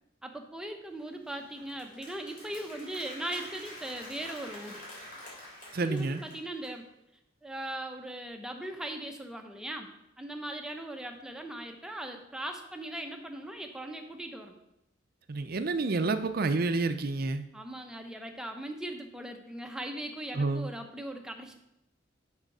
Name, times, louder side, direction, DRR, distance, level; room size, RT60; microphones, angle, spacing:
voice 1, 0.2-4.8 5.8-6.9 7.4-14.6 17.5-21.5, right 1 dB, 5° right, 3 dB, 0.8 m, -39 dB
Applause, 1.0-6.8, left 1 dB, 45° left, 3.4 m, -48 dB
voice 2, 5.7-6.2 15.3-17.4 20.3-20.7, right 3 dB, 50° right, 10 dB, 0.5 m, -29 dB
6.6 x 5.7 x 6.0 m, 0.85 s
head